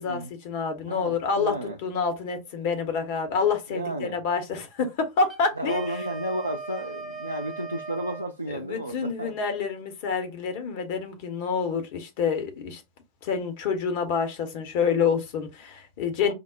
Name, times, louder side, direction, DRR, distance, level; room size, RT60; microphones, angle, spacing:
voice 1, 0.0-5.8 8.5-12.8 13.2-16.3, left 5 dB, 50° left, 0.9 m, -27 dB
voice 2, 0.9-1.8 3.7-4.2 5.6-9.3 16.3-16.4, right 1 dB, 85° right, 0.4 m, -32 dB
Wind instrument woodwind instrument, 5.2-8.3, right 4 dB, 20° right, 0.7 m, -38 dB
5.1 x 2.1 x 2.4 m
figure-of-eight pair, 90°, 0 cm